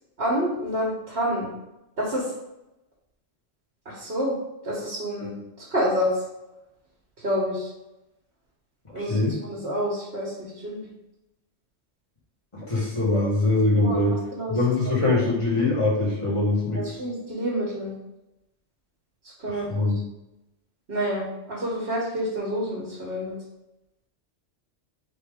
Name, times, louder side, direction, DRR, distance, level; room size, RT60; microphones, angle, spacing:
voice 1, 0.2-1.5 2.0-2.3 3.8-4.4 4.6-6.1 7.2-7.7 8.9-10.8 13.1-13.2 13.8-14.0 14.3-14.5 15.1-15.2 16.7-17.9 19.4-19.7 20.9-23.4, equal, 55° right, -6 dB, 1.3 m, -28 dB
voice 2, 8.9-9.4 12.5-14.2 14.5-17.0 19.5-19.9, left 2 dB, 25° left, -5 dB, 1.3 m, -23 dB
4.1 x 3.6 x 3.5 m, 0.91 s
omnidirectional pair, 1.2 m